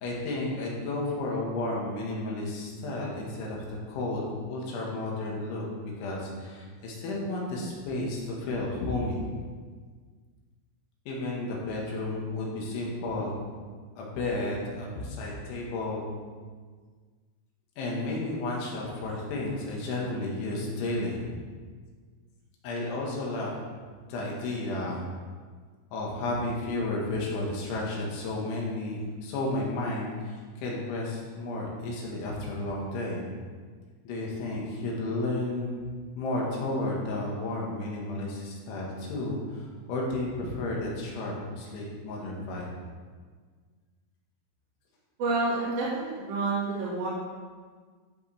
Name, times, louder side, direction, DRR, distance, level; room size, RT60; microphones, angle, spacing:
voice 1, 0.0-9.2 11.1-13.3 14.0-16.1 17.8-21.3 22.6-23.6 24.1-25.0 25.9-33.3 34.0-35.8 36.2-42.7, left 2 dB, 70° left, -3 dB, 4.0 m, -32 dB
voice 2, 45.2-47.1, right 3 dB, 55° right, -9 dB, 3.6 m, -29 dB
14.0 x 7.9 x 3.5 m, 1.5 s
omnidirectional pair, 5.8 m